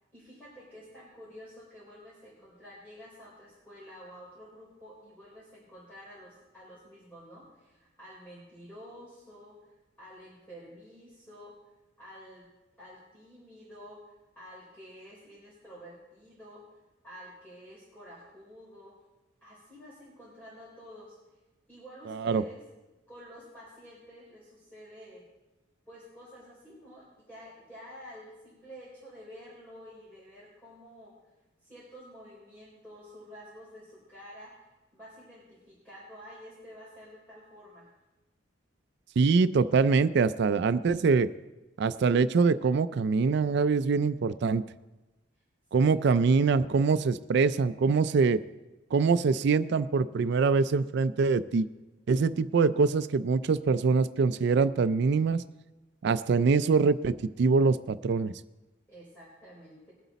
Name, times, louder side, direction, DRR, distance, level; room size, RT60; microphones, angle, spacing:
voice 1, 0.1-11.5 12.0-12.5 12.8-16.6 17.0-19.0 19.4-21.2 21.7-22.6 23.1-25.2 25.9-31.1 31.6-34.7 34.9-37.9 45.7-45.9 58.9-59.9, equal, 10° left, -8 dB, 3.9 m, -50 dB
voice 2, 22.1-22.4 39.2-41.3 41.8-44.6 45.7-48.4 48.9-51.7 52.1-55.4 56.0-58.3, right 4 dB, 60° right, 13 dB, 0.4 m, -24 dB
20.5 x 8.0 x 4.1 m, 1.1 s
head